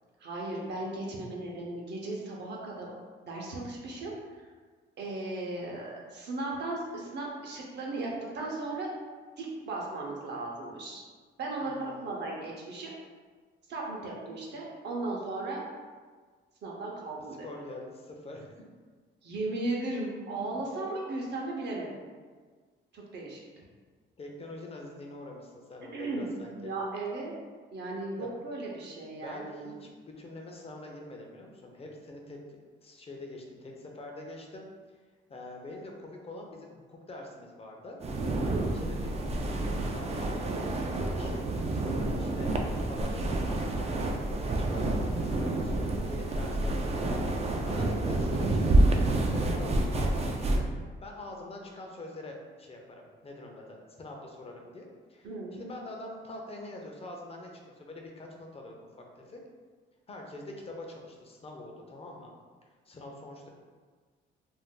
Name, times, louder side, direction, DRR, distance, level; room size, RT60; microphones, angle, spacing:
voice 1, 0.2-2.9 3.2-4.5 5.0-8.9 9.4-11.0 11.4-12.9 13.7-15.6 16.6-17.5 19.2-22.0 22.9-23.4 25.9-27.3 27.7-29.6 38.4-38.7 55.2-55.5, right 2 dB, 60° right, -2 dB, 0.7 m, -36 dB
voice 2, 11.6-12.1 17.4-18.6 24.2-26.7 28.2-28.3 29.2-32.4 32.8-34.6 35.3-38.0 38.7-42.5 42.9-47.1 47.4-58.9 59.2-59.4 60.1-62.3 62.9-63.5, left 2 dB, 30° left, 0 dB, 0.6 m, -45 dB
sound 1, 38.0-50.6, right 2 dB, 35° right, 0.4 m, -28 dB
2.6 x 2.1 x 3.7 m, 1.5 s
cardioid pair, 90°, 20 cm